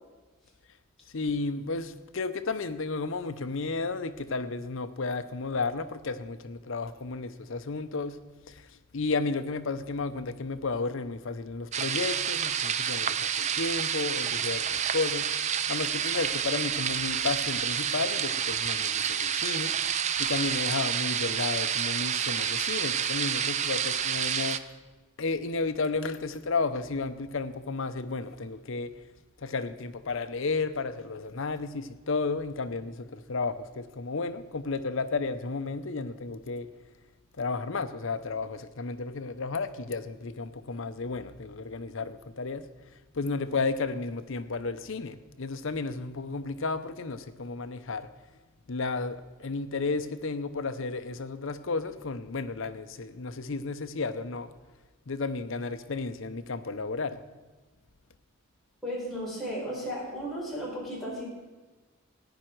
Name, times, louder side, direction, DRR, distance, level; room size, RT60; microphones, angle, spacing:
voice 1, 1.1-8.2 8.5-8.7 8.9-19.7 20.2-24.6 25.2-28.9 29.4-36.7 37.4-42.6 43.1-48.1 48.7-54.5 55.1-57.2, left 3 dB, 65° left, 0.7 m, -33 dB
sound 1, 11.7-24.6, right 8 dB, 35° right, 0.4 m, -29 dB
voice 2, 58.8-61.2, equal, ahead, 4.5 m, -34 dB
14.5 x 9.9 x 4.6 m
head